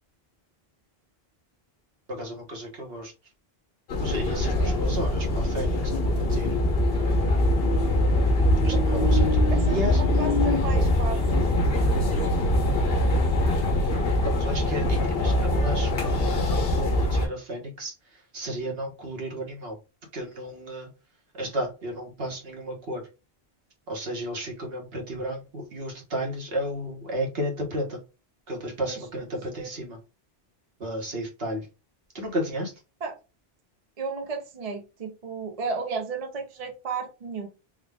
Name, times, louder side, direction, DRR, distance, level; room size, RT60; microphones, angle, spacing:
voice 1, 2.1-3.1 4.0-6.5 8.6-9.4 9.7-10.3 14.2-19.8 20.1-20.9 21.3-23.1 23.9-28.0 28.5-30.0 30.8-31.7 32.1-32.7, equal, 75° right, 1.4 m, -33 dB
sound 1, 3.9-17.3, left 1 dB, 70° left, 1.1 m, -23 dB
voice 2, 9.5-11.5 28.9-29.0 29.6-29.7 33.0-33.2 34.0-37.5, right 4 dB, 40° right, 0.7 m, -34 dB
3.7 x 2.4 x 3.4 m
omnidirectional pair, 1.0 m